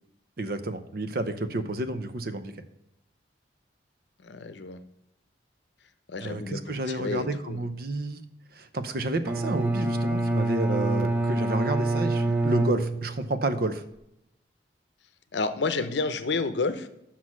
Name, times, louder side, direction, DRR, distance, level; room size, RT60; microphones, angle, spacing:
voice 1, 0.4-2.5 6.2-8.2 8.6-13.8, right 2 dB, 55° right, 10 dB, 0.7 m, -30 dB
voice 2, 4.2-4.8 6.1-7.6 15.3-16.9, left 3 dB, 75° left, 11 dB, 0.7 m, -30 dB
Bowed string instrument, 9.2-13.4, right 2 dB, 10° right, 0.7 m, -26 dB
6.4 x 5.9 x 6.0 m, 0.83 s
head